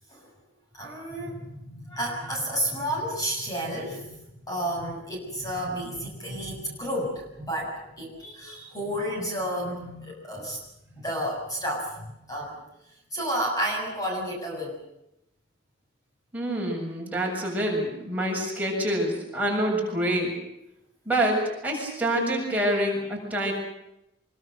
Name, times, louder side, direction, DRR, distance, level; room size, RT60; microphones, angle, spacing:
voice 1, 0.7-4.1 4.5-10.6 11.0-12.6 13.1-14.8, equal, 20° left, -1 dB, 7.2 m, -31 dB
voice 2, 16.3-20.3 21.1-23.5, right 1 dB, 10° right, -2 dB, 7.5 m, -26 dB
25.5 x 24.0 x 6.7 m, 0.86 s
head